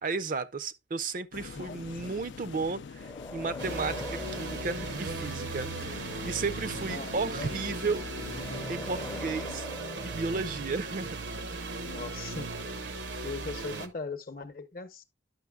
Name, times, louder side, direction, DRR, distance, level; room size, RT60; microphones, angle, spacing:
voice 1, 0.0-8.0 8.7-9.7 10.0-11.2, right 4 dB, 45° right, 0.5 m, -34 dB
sound 1, 1.3-9.6, left 5 dB, 75° left, 0.4 m, -44 dB
voice 2, 1.5-2.2 6.9-7.5 11.8-12.5 12.8-15.0, left 4 dB, 50° left, 0.8 m, -40 dB
sound 2, 3.0-5.7 8.3-11.0, left 1 dB, 15° left, 0.5 m, -43 dB
sound 3, 3.6-13.9, right 3 dB, 75° right, 0.8 m, -37 dB
10.5 x 6.1 x 2.2 m
head